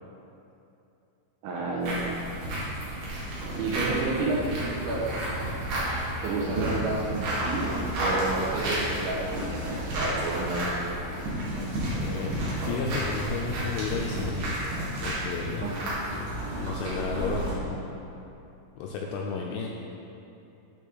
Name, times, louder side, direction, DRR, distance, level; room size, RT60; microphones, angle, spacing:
voice 1, 1.4-2.0 3.6-5.2 6.2-9.6 9.9-10.8 15.6-15.8, right 3 dB, 80° right, -5 dB, 3.0 m, -30 dB
sound 1, 1.8-17.5, right 1 dB, 60° right, 3.2 m, -31 dB
voice 2, 11.9-14.5 15.0-15.7 16.6-17.8 18.8-19.7, left 5 dB, 85° left, -1 dB, 2.8 m, -33 dB
12.0 x 4.1 x 3.9 m, 2.8 s
omnidirectional pair, 6.0 m